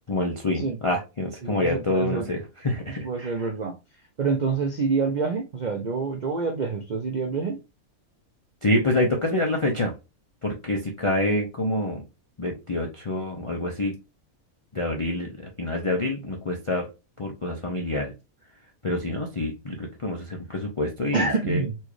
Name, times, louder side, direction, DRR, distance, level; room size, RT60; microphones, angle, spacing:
voice 1, 0.1-3.3 8.6-9.9 10.4-12.0 12.4-13.9 14.7-15.3 15.6-16.9 17.2-18.1 18.8-21.6, left 1 dB, 55° left, 0 dB, 0.3 m, -27 dB
voice 2, 1.4-2.3 3.0-3.7 4.2-7.6 21.1-21.8, right 4 dB, 75° right, 4 dB, 0.4 m, -27 dB
4.3 x 2.3 x 3.1 m, 0.27 s
omnidirectional pair, 1.5 m